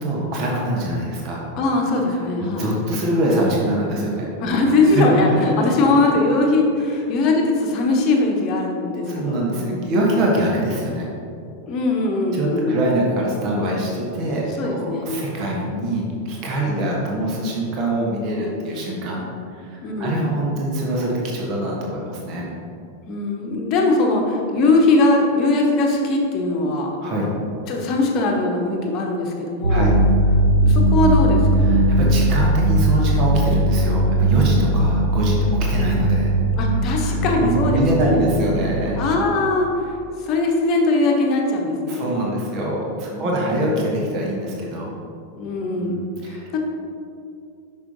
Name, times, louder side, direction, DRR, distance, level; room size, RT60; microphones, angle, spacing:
voice 1, 0.0-1.5 2.1-4.3 4.9-5.5 9.1-11.1 12.3-19.3 19.5-22.5 27.0-27.3 29.7-30.0 31.7-35.4 35.7-36.3 36.9-39.0 41.9-44.9 45.8-46.5, right 1 dB, 40° right, -2 dB, 1.3 m, -24 dB
voice 2, 1.5-2.7 4.4-10.0 11.7-12.9 14.6-15.1 16.6-17.0 19.8-20.3 23.1-27.0 27.7-29.9 30.6-31.9 36.6-38.3 39.0-42.2 43.1-43.9 45.4-46.0 46.3-46.6, left 2 dB, 35° left, 0 dB, 1.1 m, -21 dB
sound 1, 29.6-39.3, right 1 dB, 70° right, 0.4 m, -19 dB
6.1 x 5.6 x 4.0 m, 2.5 s
figure-of-eight pair, 90°, 0 cm